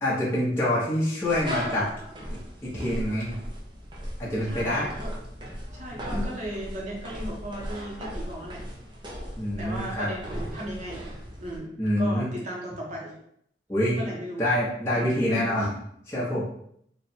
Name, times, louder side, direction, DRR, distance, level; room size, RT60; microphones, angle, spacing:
voice 1, 0.0-1.9 2.6-3.3 4.2-4.9 5.9-6.3 9.4-10.1 11.8-12.3 13.7-14.0 14.4-15.7 16.1-16.4, left 1 dB, 15° left, -8 dB, 0.9 m, -26 dB
sound 1, 1.2-11.6, equal, 25° right, 0.7 m, -37 dB
voice 2, 4.4-5.2 5.7-8.7 9.6-13.1 13.9-14.5 14.9-15.6 16.2-16.4, equal, 45° right, -2 dB, 1.1 m, -36 dB
3.1 x 2.5 x 4.2 m, 0.69 s
head